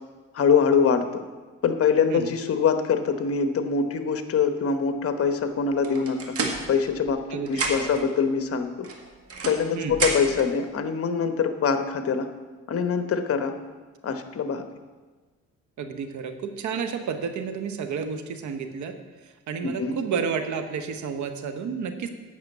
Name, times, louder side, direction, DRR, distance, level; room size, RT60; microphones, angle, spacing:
voice 1, 0.3-1.2 1.6-6.3 6.7-8.7 9.5-12.3 12.7-13.5 14.0-14.7 19.6-20.0, left 6 dB, 50° left, 8 dB, 1.1 m, -24 dB
sound 1, 5.8-7.2 7.5-8.1 8.8-10.5, right 3 dB, 50° right, 1.7 m, -30 dB
voice 2, 7.3-7.9 9.7-10.0 15.8-19.0 19.2-22.1, right 6 dB, 70° right, 8 dB, 1.1 m, -31 dB
8.5 x 6.2 x 8.0 m, 1.3 s
cardioid pair, 90°, 30 cm